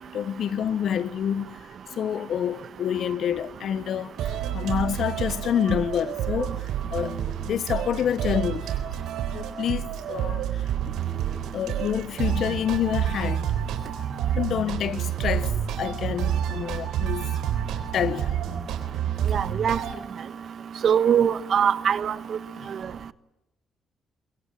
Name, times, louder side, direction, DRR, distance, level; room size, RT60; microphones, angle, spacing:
voice 1, 0.1-6.5 6.9-8.8 9.3-11.0 11.5-13.5 14.3-17.3 17.9-18.4 22.5-22.7, left 9 dB, 65° left, 1.1 m, -28 dB
sound 1, 4.2-19.9, right 10 dB, 85° right, 3.8 m, -29 dB
voice 2, 19.3-19.8 20.8-22.1, right 8 dB, 60° right, 1.2 m, -21 dB
24.0 x 23.0 x 8.9 m
cardioid pair, 90°, 0 cm